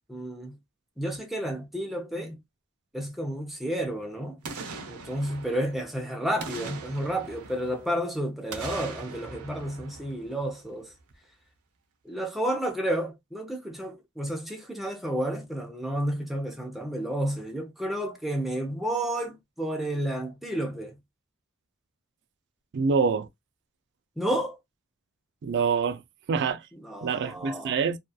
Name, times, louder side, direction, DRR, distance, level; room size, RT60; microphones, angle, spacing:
voice 1, 0.1-0.6 1.0-2.4 2.9-4.4 4.9-10.9 12.0-21.0 24.2-24.6 26.7-27.8, right 1 dB, ahead, 0.5 m, -31 dB
Boom, 4.4-6.0 6.4-8.0 8.5-10.7 11.1-11.2, right 4 dB, 90° right, 0.7 m, -41 dB
voice 2, 22.7-23.3 25.4-26.0 26.3-26.6 27.0-28.0, right 5 dB, 50° right, 0.3 m, -25 dB
2.7 x 2.3 x 2.3 m
head